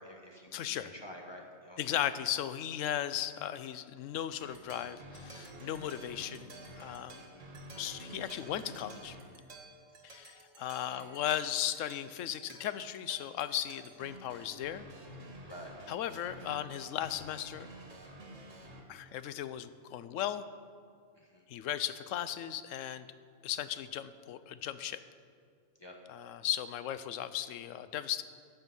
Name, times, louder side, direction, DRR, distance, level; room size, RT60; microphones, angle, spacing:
voice 1, 0.0-2.0 3.2-3.3 7.2-7.5 9.9-10.0 10.9-11.1 15.5-15.7 21.1-21.4 25.8-26.0, equal, 20° left, 0 dB, 1.4 m, -50 dB
voice 2, 0.5-0.9 1.8-6.5 6.8-7.2 7.8-9.2 10.0-14.9 15.9-17.7 18.9-20.4 21.5-23.0 23.4-25.0 26.1-28.2, left 11 dB, 85° left, 13 dB, 0.9 m, -36 dB
sound 1, 4.4-18.8, right 1 dB, 80° right, 1.9 m, -50 dB
13.5 x 8.1 x 5.4 m, 2.1 s
omnidirectional pair, 1.3 m